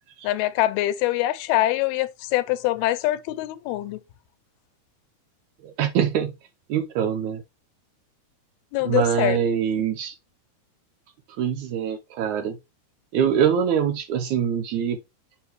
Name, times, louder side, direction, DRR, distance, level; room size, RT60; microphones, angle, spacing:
voice 1, 0.2-4.0 8.7-9.4, left 15 dB, 80° left, 2.5 m, -24 dB
voice 2, 5.6-6.3 6.7-7.4 8.8-10.1 11.4-12.6 13.1-15.0, right 8 dB, 80° right, 1.7 m, -24 dB
7.3 x 6.1 x 3.2 m
omnidirectional pair, 4.6 m